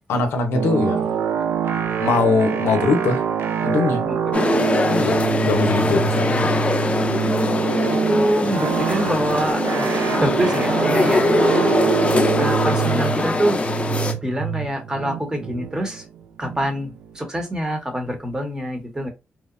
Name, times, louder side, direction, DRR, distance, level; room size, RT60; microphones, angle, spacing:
voice 1, 0.1-1.0 2.0-3.2 3.6-4.1 4.9-6.7, left 3 dB, 90° left, 0.5 m, -21 dB
sound 1, 0.5-17.1, right 8 dB, 75° right, 0.3 m, -25 dB
voice 2, 4.0-4.4 6.0-6.1 7.9-9.6 10.2-11.5 12.4-13.6 14.2-16.0 16.4-19.1, right 1 dB, 15° right, 0.9 m, -25 dB
sound 2, 4.3-14.1, left 3 dB, 30° left, 0.4 m, -22 dB
2.9 x 2.0 x 2.4 m
cardioid pair, 70°, 4 cm